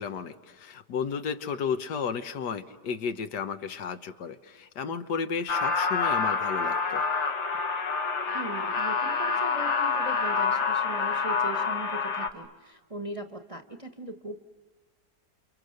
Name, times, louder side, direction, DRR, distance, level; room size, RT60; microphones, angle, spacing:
voice 1, 0.0-7.0, left 6 dB, 75° left, 9 dB, 1.6 m, -33 dB
sound 1, 5.5-12.3, left 5 dB, 45° left, 1.3 m, -27 dB
voice 2, 8.3-14.4, right 2 dB, 20° right, 5 dB, 1.1 m, -39 dB
29.0 x 29.0 x 6.6 m, 1.5 s
omnidirectional pair, 1.8 m